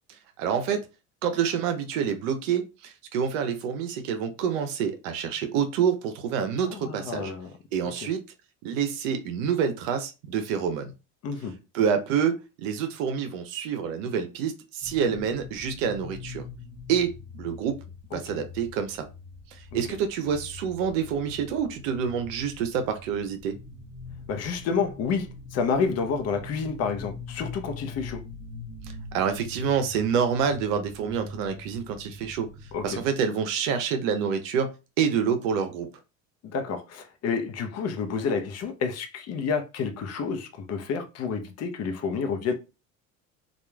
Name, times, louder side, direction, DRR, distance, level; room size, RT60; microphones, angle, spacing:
voice 1, 0.4-0.8 1.2-7.3 7.7-8.2 8.6-10.9 11.7-16.4 16.9-17.8 18.1-19.1 19.7-23.6 29.1-32.5 32.8-34.7 35.0-35.9, right 7 dB, 75° right, 0.6 m, -27 dB
voice 2, 6.6-7.5 7.8-7.9 11.2-11.6 18.1-18.4 19.7-19.8 24.3-28.2 32.7-33.0 36.4-42.5, left 5 dB, 40° left, 0.6 m, -29 dB
sound 1, 14.8-33.1, left 3 dB, 10° right, 1.0 m, -43 dB
3.0 x 2.3 x 2.2 m
hypercardioid pair, 70°, 39 cm